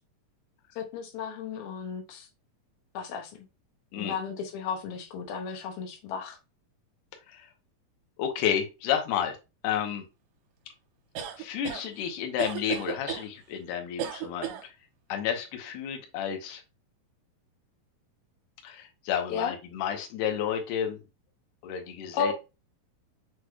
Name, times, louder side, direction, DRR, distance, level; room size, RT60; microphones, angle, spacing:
voice 1, 0.8-2.3 2.9-3.4 4.0-6.4 19.3-19.5 22.1-22.3, left 6 dB, 90° left, 2.8 m, -34 dB
voice 2, 8.2-9.4 9.6-10.1 11.4-14.7 15.1-16.6 18.6-21.0 21.6-22.3, left 9 dB, 70° left, 2.2 m, -31 dB
sound 1, 11.2-11.8 12.4-13.3 14.0-14.6, right 9 dB, 75° right, 2.4 m, -34 dB
6.2 x 3.2 x 2.3 m
omnidirectional pair, 4.1 m